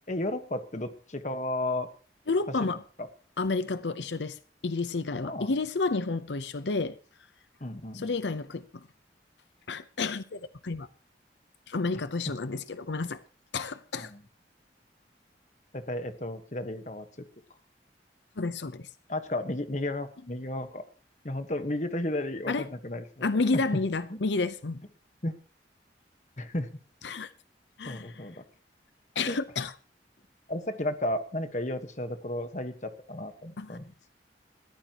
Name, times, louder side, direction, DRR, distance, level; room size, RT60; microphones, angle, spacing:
voice 1, 0.1-1.9 2.6-2.8 5.2-5.5 7.6-8.1 14.0-14.2 15.7-17.3 19.1-20.8 21.2-23.3 23.5-23.6 24.1-24.2 25.2-25.3 26.4-26.7 27.8-28.4 29.3-29.4 30.5-34.1, left 1 dB, 40° left, 1.3 m, -33 dB
voice 2, 2.3-2.8 3.4-7.0 7.9-8.9 9.7-10.9 11.7-13.2 13.5-14.1 18.4-18.9 22.5-22.7 23.2-24.8 27.0-27.3 27.8-28.3 29.1-29.7 33.6-33.8, left 3 dB, 85° left, 0.7 m, -30 dB
21.0 x 14.0 x 3.0 m
head